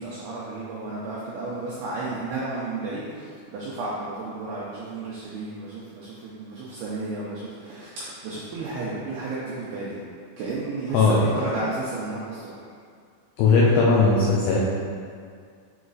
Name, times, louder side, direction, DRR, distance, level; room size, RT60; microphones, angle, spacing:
voice 1, 0.0-10.0 10.4-12.7, right 2 dB, 90° right, -6 dB, 2.3 m, -33 dB
voice 2, 13.4-14.6, left 4 dB, 85° left, -4 dB, 2.3 m, -18 dB
7.9 x 3.1 x 3.9 m, 2.2 s
omnidirectional pair, 5.5 m